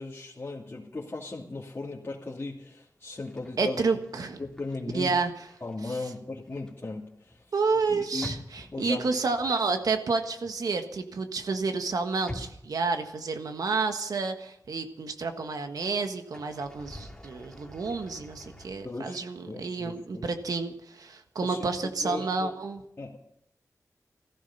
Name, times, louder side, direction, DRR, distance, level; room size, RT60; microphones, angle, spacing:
voice 1, 0.0-3.8 4.4-5.1 5.6-7.4 7.9-8.4 8.7-9.2 18.8-20.3 21.4-22.5 23.0-23.3, left 3 dB, 40° left, -5 dB, 2.6 m, -37 dB
sound 1, 3.1-5.8 6.0-11.2 11.5-13.6 13.9-14.0 16.2-18.7, left 1 dB, 10° left, 2.5 m, -47 dB
voice 2, 3.6-4.4 4.9-5.5 5.9-6.0 7.5-22.8, right 4 dB, 85° right, 6 dB, 1.5 m, -30 dB
16.0 x 14.5 x 5.7 m, 0.77 s
wide cardioid pair, 65°, 6 cm